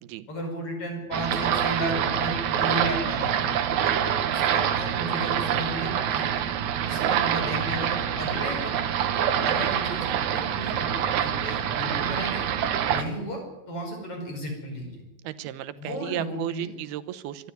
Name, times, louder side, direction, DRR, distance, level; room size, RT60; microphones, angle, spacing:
voice 1, 0.3-3.5 4.0-6.5 6.9-8.8 9.4-10.1 10.3-10.9 11.2-12.4 12.9-15.0 15.8-16.7, equal, 35° left, 3 dB, 6.1 m, -34 dB
sound 1, 1.1-13.0, right 9 dB, 65° right, 2.2 m, -26 dB
voice 2, 15.2-17.5, right 14 dB, 85° right, 13 dB, 2.9 m, -34 dB
24.5 x 13.0 x 9.4 m, 1.0 s
omnidirectional pair, 4.4 m